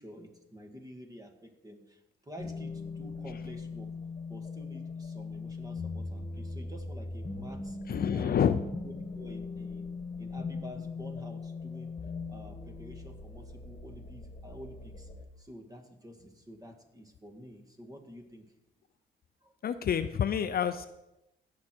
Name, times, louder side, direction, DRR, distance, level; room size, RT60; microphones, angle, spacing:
voice 1, 0.0-3.9 4.3-7.8 8.1-8.6 8.8-9.9 10.2-12.0 12.3-15.1 15.4-18.4 19.4-19.5, equal, 20° right, 5 dB, 1.9 m, -49 dB
sound 1, 2.4-15.2, left 3 dB, 25° left, 1.7 m, -40 dB
voice 2, 7.9-8.6 19.6-20.9, left 8 dB, 50° left, 10 dB, 0.6 m, -28 dB
17.0 x 6.3 x 4.5 m, 0.90 s
cardioid pair, 90°, 20 cm